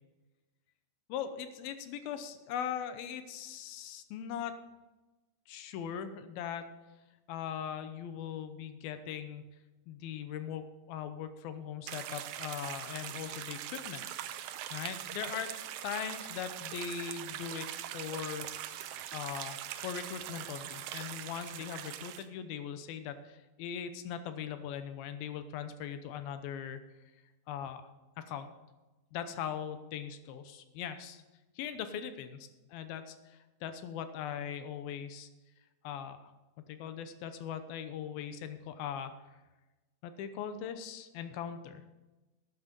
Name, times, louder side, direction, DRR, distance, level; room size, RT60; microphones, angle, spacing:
voice 1, 1.1-4.6 5.5-6.7 7.3-9.5 9.9-14.1 14.7-15.5 15.8-17.7 17.9-18.5 19.1-26.8 27.5-27.9 28.2-28.5 29.1-31.2 31.6-32.3 32.7-35.3 35.8-36.3 36.6-39.1 40.0-41.8, left 8 dB, 80° left, 10 dB, 2.7 m, -40 dB
sound 1, 11.9-22.2, right 12 dB, 80° right, 2.2 m, -42 dB
12.5 x 9.3 x 5.3 m, 1.1 s
omnidirectional pair, 4.3 m